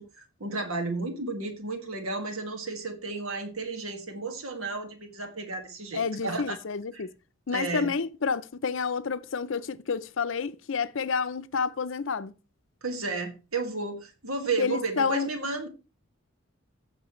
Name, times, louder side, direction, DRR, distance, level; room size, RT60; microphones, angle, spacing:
voice 1, 0.0-6.6 6.9-7.0 7.5-7.9 12.8-15.7, right 3 dB, 85° right, 2.0 m, -33 dB
voice 2, 5.9-7.1 7.5-12.3 14.6-15.3, left 5 dB, 65° left, 0.6 m, -29 dB
15.0 x 6.7 x 3.1 m
head